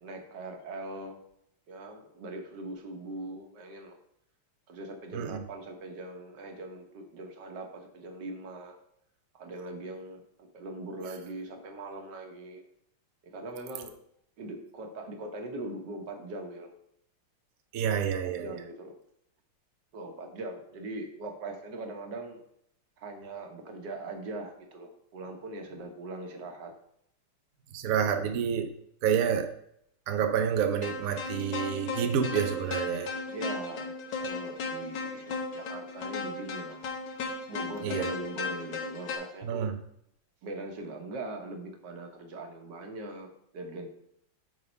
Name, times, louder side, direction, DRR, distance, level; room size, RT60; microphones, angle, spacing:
voice 1, 0.0-1.2 1.7-4.0 4.7-8.8 9.3-12.6 13.2-14.0 14.4-16.7 18.2-18.9 19.9-22.4 23.0-26.7 27.9-28.0 33.3-36.9 37.5-39.7 40.4-43.3 43.5-43.9, right 2 dB, 55° right, 1.6 m, -41 dB
voice 2, 17.7-18.4 27.7-28.7 29.0-29.5 30.1-33.1 37.8-38.1 39.4-39.7, right 8 dB, 80° right, 0.7 m, -28 dB
sound 1, 30.8-39.2, left 3 dB, 65° left, 1.8 m, -36 dB
8.6 x 3.7 x 5.4 m
omnidirectional pair, 2.4 m